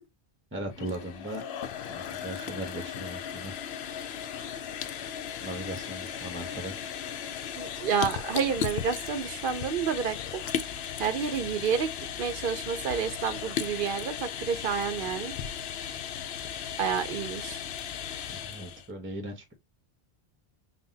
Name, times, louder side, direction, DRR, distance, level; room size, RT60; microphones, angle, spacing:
voice 1, 0.5-1.4 1.8-3.5 5.4-6.9 18.3-19.5, right 1 dB, 15° right, 0.7 m, -38 dB
sound 1, 0.6-18.9, left 8 dB, 80° left, 0.8 m, -36 dB
voice 2, 7.6-10.4 11.0-11.9 12.2-15.3 16.8-17.6, right 7 dB, 65° right, 0.7 m, -29 dB
5.6 x 2.2 x 2.6 m
omnidirectional pair, 1.0 m